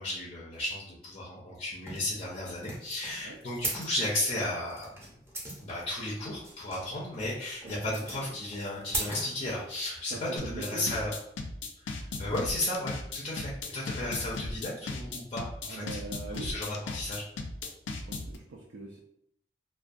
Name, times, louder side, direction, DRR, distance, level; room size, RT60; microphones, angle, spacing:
voice 1, 0.0-4.9 5.6-11.1 11.8-15.8 16.3-17.2, left 1 dB, 30° left, -5 dB, 0.5 m, -34 dB
sound 1, 1.8-10.0, right 1 dB, 15° right, 0.6 m, -39 dB
voice 2, 10.1-11.0 15.7-16.5 17.9-19.0, right 3 dB, 75° right, -1 dB, 0.4 m, -42 dB
sound 2, 10.4-18.4, left 3 dB, 85° left, 0.4 m, -36 dB
2.3 x 2.2 x 2.5 m, 0.73 s
head